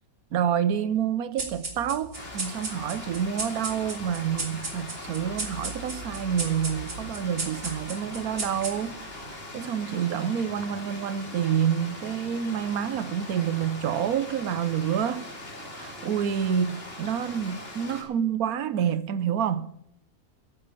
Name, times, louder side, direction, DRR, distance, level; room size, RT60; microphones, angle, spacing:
voice 1, 0.3-9.0 9.5-15.3 15.8-19.7, right 8 dB, 85° right, 1.3 m, -28 dB
sound 1, 1.4-9.1, right 2 dB, 40° right, 2.5 m, -36 dB
Stream, 2.1-18.0, left 1 dB, 40° left, 2.9 m, -41 dB
9.8 x 8.8 x 9.0 m
omnidirectional pair, 1.5 m